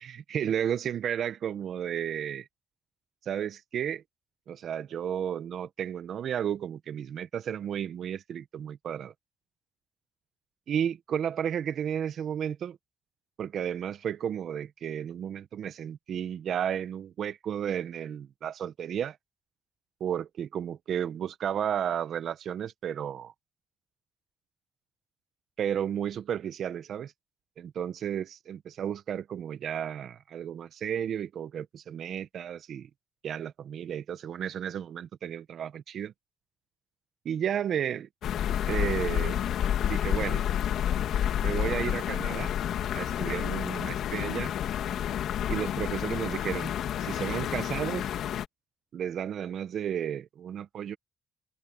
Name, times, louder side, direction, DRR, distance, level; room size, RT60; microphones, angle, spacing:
voice 1, 0.0-2.5 3.2-4.0 4.5-9.1 10.7-12.8 13.4-19.2 20.0-23.3 25.6-27.1 27.6-32.9 33.2-36.1 37.2-38.1 38.7-39.4 39.9-40.5 41.4-42.5 42.9-44.5 45.5-46.7 47.0-48.1 48.9-51.0, right 9 dB, 65° right, 0.8 m, -33 dB
sound 1, 38.2-48.5, left 10 dB, 75° left, 2.2 m, -29 dB
cardioid pair, 90°, 0 cm